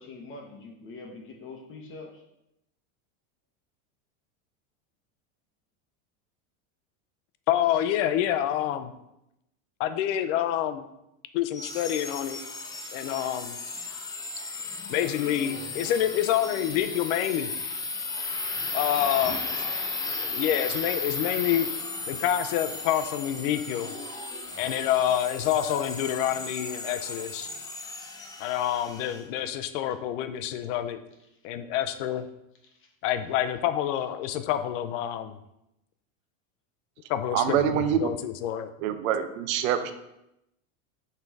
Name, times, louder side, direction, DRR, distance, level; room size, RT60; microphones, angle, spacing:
voice 1, 0.0-2.2 19.0-19.4 32.8-32.9, left 3 dB, 30° left, 2 dB, 0.9 m, -43 dB
voice 2, 7.5-8.9 9.8-10.9 11.3-12.4 12.9-13.6 14.9-17.5 18.7-19.3 20.2-21.7 22.1-23.9 24.6-27.5 28.4-31.0 31.4-32.3 33.0-35.4 37.1-38.7, left 11 dB, 60° left, 10 dB, 0.7 m, -27 dB
sound 1, 11.5-29.2, left 3 dB, 10° left, 0.5 m, -35 dB
voice 3, 37.3-38.0 38.8-39.9, right 10 dB, 75° right, 10 dB, 0.8 m, -25 dB
5.6 x 3.8 x 4.6 m, 0.85 s
supercardioid pair, 135°, 41 cm